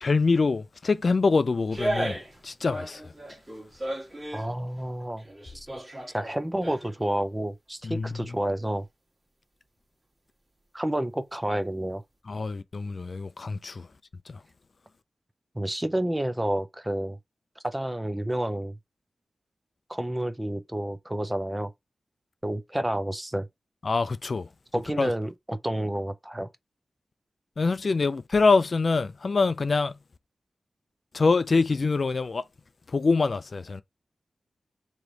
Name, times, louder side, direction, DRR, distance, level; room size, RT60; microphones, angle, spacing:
voice 1, 0.0-2.2 2.4-3.0 7.8-8.1 12.3-13.9 23.8-24.5 25.0-25.1 27.6-29.9 31.1-32.4 32.9-33.8, left 4 dB, 55° left, 0.3 m, -24 dB
sound 1, 1.7-2.4 2.7-4.5 5.0-7.1 7.4-7.5, right 1 dB, 30° right, 1.7 m, -34 dB
voice 2, 4.3-5.2 5.5-5.7 6.1-8.9 10.7-12.0 15.5-17.2 17.6-18.8 19.9-21.7 22.4-23.5 24.7-26.5, right 1 dB, 15° right, 0.6 m, -29 dB
3.2 x 3.0 x 3.8 m
wide cardioid pair, 80°, 0 cm